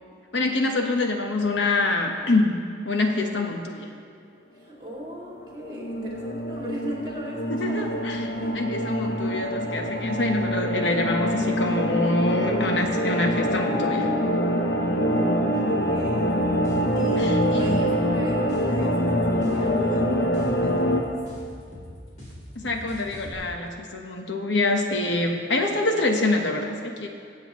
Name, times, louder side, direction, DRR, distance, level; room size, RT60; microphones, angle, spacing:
voice 1, 0.3-3.9 7.5-8.3 8.5-14.1 17.2-17.8 22.5-27.1, left 2 dB, 85° left, 3 dB, 1.1 m, -25 dB
voice 2, 4.5-7.8 8.4-8.5 14.9-16.3 16.9-21.2, right 1 dB, 25° right, -5 dB, 2.5 m, -38 dB
sound 1, 5.3-21.0, equal, 60° left, 1.0 m, -25 dB
sound 2, 16.0-23.3, equal, 40° left, 3.1 m, -42 dB
23.5 x 8.0 x 3.1 m, 2.3 s
head